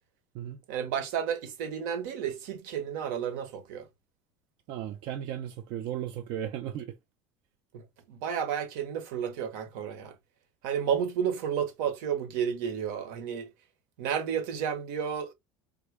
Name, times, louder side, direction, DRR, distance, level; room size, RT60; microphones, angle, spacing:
voice 1, 0.7-3.9 7.7-10.1 10.6-13.5 14.0-15.3, right 8 dB, 80° right, 0.8 m, -32 dB
voice 2, 4.7-6.9, right 10 dB, 60° right, 0.4 m, -35 dB
3.5 x 2.2 x 3.2 m
cardioid pair, 140°, 10 cm